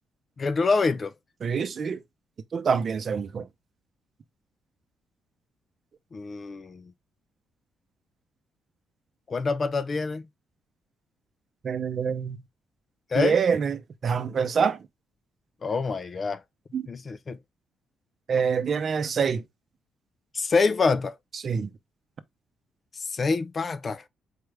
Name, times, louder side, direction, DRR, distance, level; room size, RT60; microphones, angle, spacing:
voice 1, 0.4-1.1 6.1-6.9 9.3-10.2 13.1-13.4 15.6-16.4 16.9-17.4 20.3-21.1 22.9-24.0, left 4 dB, 40° left, 0.4 m, -26 dB
voice 2, 1.4-2.0 2.5-3.5 11.6-12.4 13.1-14.8 16.7-16.9 18.3-19.4 21.4-21.7, right 6 dB, 50° right, 0.6 m, -26 dB
4.4 x 3.4 x 3.2 m
cardioid pair, 90°, 0 cm